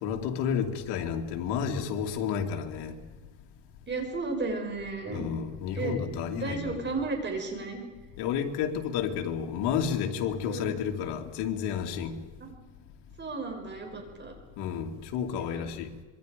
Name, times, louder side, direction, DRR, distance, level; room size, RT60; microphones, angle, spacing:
voice 1, 0.0-3.0 5.1-6.9 8.2-12.2 14.6-15.9, left 7 dB, 75° left, 2.6 m, -31 dB
voice 2, 3.9-5.3 5.8-6.0 6.3-7.8 10.5-10.8 12.4-12.5 13.2-14.3 15.4-15.7, right 3 dB, 25° right, 5.7 m, -34 dB
26.0 x 22.0 x 5.2 m
cardioid pair, 120°, 40 cm